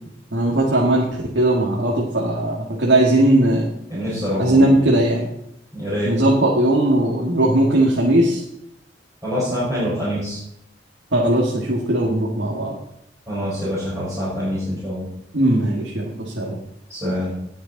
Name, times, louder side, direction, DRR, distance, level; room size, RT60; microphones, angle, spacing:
voice 1, 0.3-3.7 4.4-5.3 6.0-8.4 11.1-12.7 15.3-16.6, right 1 dB, 70° right, -3 dB, 2.1 m, -18 dB
voice 2, 3.9-4.7 5.7-6.1 9.2-10.4 13.3-15.1 16.9-17.3, equal, 15° right, -11 dB, 5.5 m, -25 dB
19.5 x 6.7 x 4.1 m, 0.78 s
head